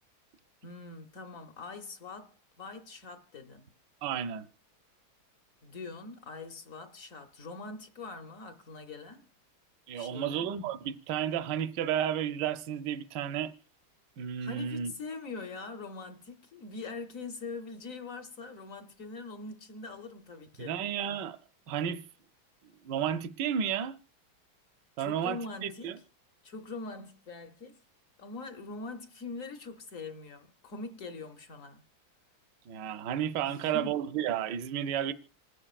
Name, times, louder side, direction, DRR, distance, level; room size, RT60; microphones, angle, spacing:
voice 1, 0.6-3.7 5.6-9.3 9.9-10.5 14.4-20.8 25.0-25.9 26.4-27.8 28.2-31.8 33.4-34.0, left 3 dB, 55° left, 1.0 m, -43 dB
voice 2, 4.0-4.4 9.9-13.5 14.2-14.9 20.6-21.4 21.7-22.0 22.8-24.0 25.0-26.0 32.7-35.1, right 9 dB, 65° right, 1.3 m, -32 dB
27.0 x 10.0 x 2.4 m
omnidirectional pair, 2.3 m